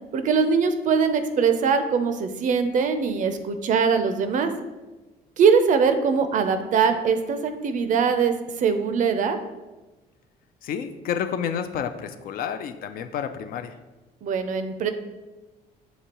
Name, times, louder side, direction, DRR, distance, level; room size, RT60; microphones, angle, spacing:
voice 1, 0.1-4.5 5.4-9.4 14.2-14.9, right 6 dB, 50° right, 8 dB, 0.5 m, -22 dB
voice 2, 10.6-13.8, left 8 dB, 60° left, 9 dB, 0.4 m, -30 dB
6.7 x 2.7 x 2.9 m, 1.1 s
cardioid pair, 110°, 17 cm